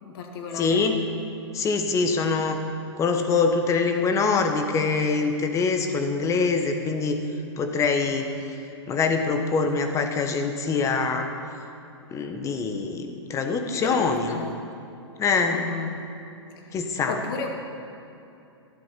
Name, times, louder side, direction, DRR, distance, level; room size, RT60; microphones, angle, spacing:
voice 1, 0.0-0.8 13.8-14.5 15.5-15.9 16.7-16.8 17.1-17.5, left 4 dB, 50° left, 2 dB, 2.1 m, -34 dB
voice 2, 0.5-1.0 1.5-2.6 3.0-7.2 7.6-8.3 8.9-11.3 12.1-14.4 15.2-15.6 16.7-17.2, left 4 dB, 20° left, 6 dB, 1.2 m, -24 dB
13.0 x 11.0 x 5.8 m, 2.8 s
hypercardioid pair, 125°, 15 cm